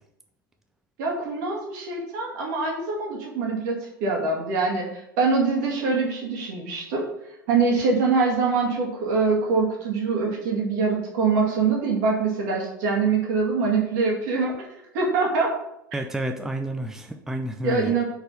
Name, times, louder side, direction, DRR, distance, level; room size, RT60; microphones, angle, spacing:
voice 1, 1.0-7.0 7.5-14.5 14.9-15.5 17.6-18.0, right 4 dB, 60° right, -1 dB, 2.0 m, -24 dB
voice 2, 15.9-17.9, right 1 dB, 5° right, 4 dB, 0.5 m, -30 dB
5.0 x 4.4 x 5.3 m, 0.82 s
figure-of-eight pair, 80°, 11 cm